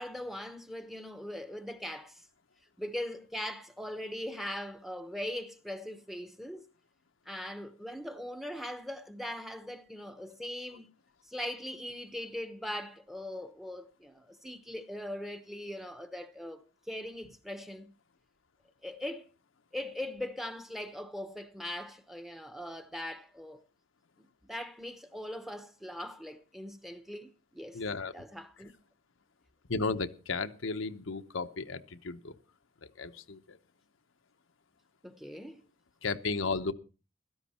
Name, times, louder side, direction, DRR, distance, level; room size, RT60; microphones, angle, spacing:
voice 1, 0.0-2.2 2.8-6.7 7.3-10.9 11.2-16.6 16.9-17.9 18.8-19.3 19.7-23.6 24.4-27.8 28.1-28.7 35.0-35.6, left 1 dB, ahead, 0.9 m, -40 dB
voice 2, 27.7-28.1 29.7-32.4 32.8-33.6 36.0-36.7, left 4 dB, 75° left, 1.0 m, -34 dB
16.0 x 13.5 x 4.3 m
head